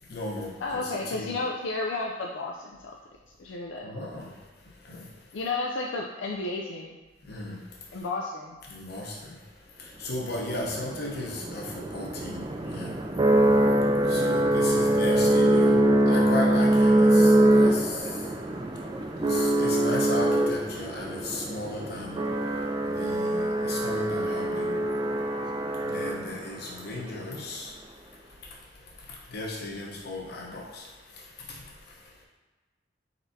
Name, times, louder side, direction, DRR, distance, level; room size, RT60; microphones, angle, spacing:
voice 1, 0.1-1.3 3.8-4.3 4.9-5.0 7.3-7.6 8.7-9.1 10.0-12.4 12.7-12.9 14.1-15.8 16.1-17.9 19.2-22.2 22.8-24.7 25.8-27.7 29.3-30.8, left 2 dB, 60° left, -2 dB, 0.9 m, -35 dB
voice 2, 0.6-2.9 3.4-3.9 5.3-7.0 7.9-8.6, left 3 dB, 80° left, -1 dB, 0.4 m, -32 dB
sound 1, 10.4-26.6, right 1 dB, 25° right, 0.3 m, -24 dB
4.5 x 4.1 x 2.7 m, 1.3 s
head